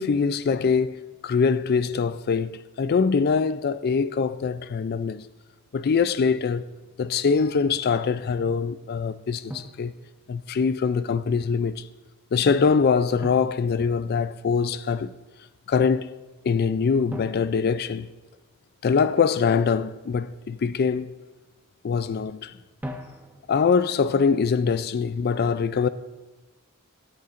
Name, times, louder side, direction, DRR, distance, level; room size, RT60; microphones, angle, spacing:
voice 1, 0.0-5.2 5.7-6.7 7.0-9.9 10.3-11.8 12.3-15.1 15.7-16.1 16.4-18.1 18.8-21.1 21.8-22.5 23.5-25.9, left 5 dB, 45° left, 0.4 m, -23 dB
Drum, 7.0-7.3 9.5-10.6 13.2-14.6 17.1-18.8 22.8-23.8, equal, 10° right, 0.8 m, -41 dB
18.5 x 6.7 x 2.5 m
head